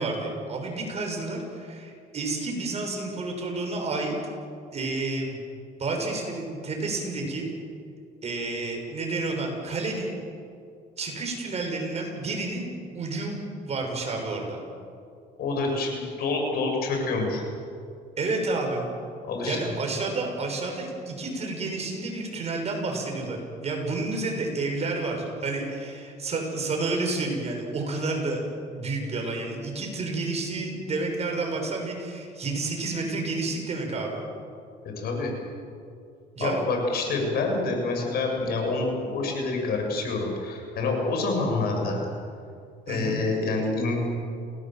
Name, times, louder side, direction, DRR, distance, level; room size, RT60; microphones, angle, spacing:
voice 1, 0.0-4.1 4.7-5.4 5.8-7.5 8.2-10.1 11.0-12.7 12.9-13.4 13.6-14.6 18.2-18.9 19.4-28.4 28.7-34.2 36.3-36.6 42.9-43.2, right 3 dB, 40° right, 2 dB, 6.6 m, -30 dB
voice 2, 15.4-17.4 19.3-19.6 35.0-35.3 36.4-42.0 42.9-44.0, left 3 dB, 65° left, 2 dB, 7.3 m, -27 dB
28.5 x 19.0 x 7.7 m, 2.4 s
cardioid pair, 110°, 17 cm